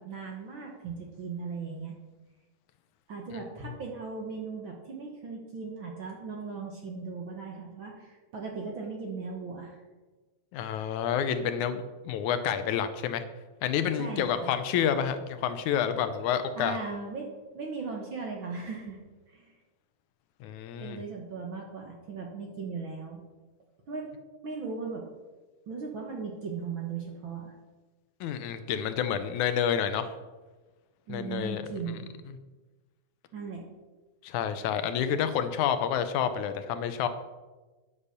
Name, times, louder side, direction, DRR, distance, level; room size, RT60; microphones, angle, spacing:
voice 1, 0.0-1.9 3.1-9.8 14.0-14.5 16.6-19.0 19.3-19.5 20.8-23.2 23.9-24.1 24.4-25.0 25.7-27.5 31.1-32.1 33.3-33.7, right 4 dB, 55° right, 0 dB, 1.5 m, -38 dB
voice 2, 10.5-13.2 13.6-16.8 20.4-21.0 28.2-30.1 31.1-31.6 34.2-37.1, left 8 dB, 75° left, 10 dB, 2.0 m, -29 dB
9.8 x 7.2 x 6.6 m, 1.2 s
omnidirectional pair, 3.6 m